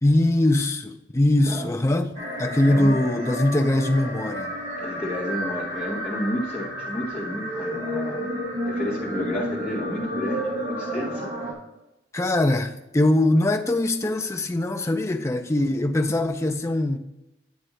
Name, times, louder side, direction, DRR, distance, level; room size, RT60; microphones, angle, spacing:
voice 1, 0.0-2.1 2.4-4.6 12.1-17.0, left 1 dB, 15° left, 0.4 m, -22 dB
sound 1, 2.1-11.5, equal, 35° right, 1.9 m, -31 dB
voice 2, 4.8-11.3, left 1 dB, 5° right, 1.7 m, -31 dB
9.3 x 3.3 x 6.2 m
head